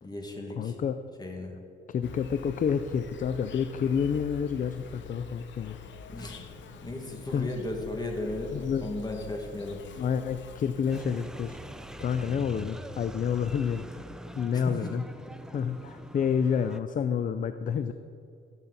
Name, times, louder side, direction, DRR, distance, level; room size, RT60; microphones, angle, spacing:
voice 1, 0.0-0.8 1.2-1.5 6.1-6.5 6.8-9.8 14.5-14.9, left 2 dB, 20° left, 1 dB, 2.0 m, -36 dB
voice 2, 0.6-1.0 1.9-5.8 7.3-7.5 8.5-8.8 10.0-11.6 12.0-13.9 14.4-15.0 15.5-17.9, left 7 dB, 40° left, 10 dB, 0.5 m, -29 dB
Insect, 2.0-11.0, left 6 dB, 65° left, 0.9 m, -46 dB
sound 1, 10.9-16.8, right 1 dB, 5° right, 0.6 m, -43 dB
16.0 x 7.3 x 4.1 m, 2.5 s
cardioid pair, 90°, 20 cm